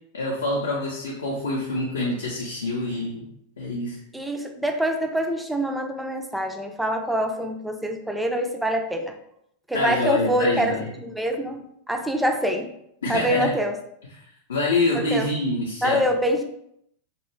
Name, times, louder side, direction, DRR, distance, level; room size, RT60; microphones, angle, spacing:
voice 1, 0.1-3.3 3.6-4.0 9.7-11.0 13.0-13.5 14.5-16.1, left 2 dB, 65° left, -3 dB, 0.4 m, -26 dB
voice 2, 4.1-9.1 9.7-10.7 11.0-12.7 13.1-13.8 15.1-15.3 15.8-16.4, right 1 dB, 5° right, 4 dB, 0.3 m, -25 dB
2.2 x 2.1 x 3.1 m, 0.75 s
figure-of-eight pair, 90°, 0 cm